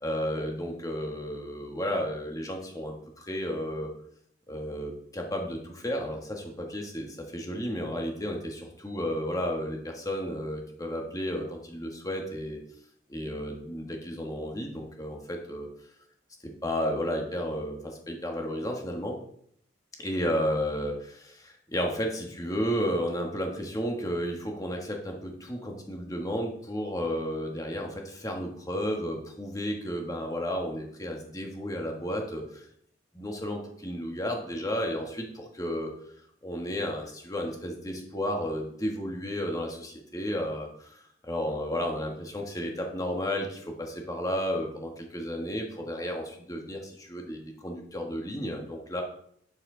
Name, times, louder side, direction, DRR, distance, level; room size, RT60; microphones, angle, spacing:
voice 1, 0.0-3.9 4.5-12.6 13.1-15.7 16.6-19.2 20.0-32.7 33.1-35.9 36.4-49.0, equal, 20° left, 1 dB, 1.5 m, -33 dB
9.8 x 7.2 x 3.9 m, 0.67 s
head